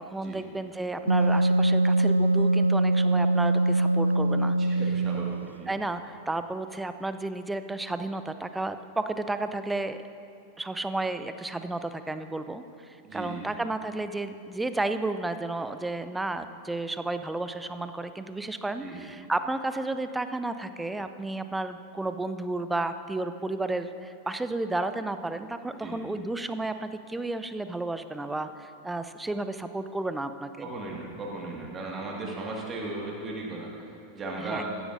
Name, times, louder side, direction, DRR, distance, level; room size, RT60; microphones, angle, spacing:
voice 1, 0.0-4.6 5.7-10.0 10.6-30.7 34.4-34.6, right 2 dB, 5° right, 10 dB, 0.5 m, -32 dB
Wind instrument woodwind instrument, 1.1-5.5, right 2 dB, 80° right, 0.3 m, -23 dB
voice 2, 4.6-5.7 13.0-13.4 18.8-19.0 25.8-26.0 30.6-34.7, right 2 dB, 25° right, -2 dB, 1.8 m, -37 dB
16.0 x 13.0 x 2.6 m, 2.5 s
figure-of-eight pair, 90°, 0 cm